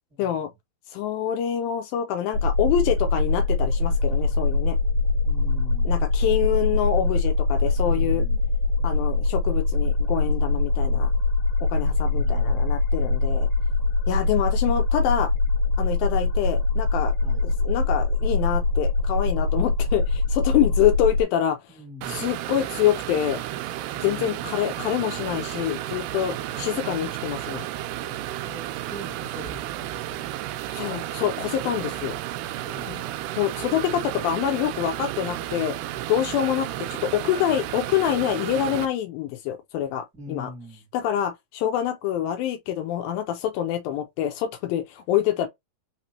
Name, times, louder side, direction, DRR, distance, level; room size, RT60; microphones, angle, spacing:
voice 1, 0.2-0.5 0.9-4.8 5.8-8.2 8.8-11.1 11.7-13.5 14.1-15.3 15.8-17.1 17.4-21.6 22.1-23.4 24.0-27.7 30.7-32.2 32.9-33.0 33.4-35.8 36.1-40.5 40.9-45.5, left 10 dB, 85° left, 2.1 m, -26 dB
sound 1, 2.3-21.2, left 3 dB, 65° left, 2.0 m, -23 dB
voice 2, 5.2-5.9 7.7-8.5 12.1-12.7 17.2-17.5 21.7-22.2 24.0-24.5 26.3-26.6 28.0-30.3 32.6-33.1 40.1-40.9, left 1 dB, 5° right, 0.8 m, -43 dB
sound 2, 22.0-38.9, right 14 dB, 85° right, 2.7 m, -32 dB
5.9 x 3.0 x 2.8 m
omnidirectional pair, 4.7 m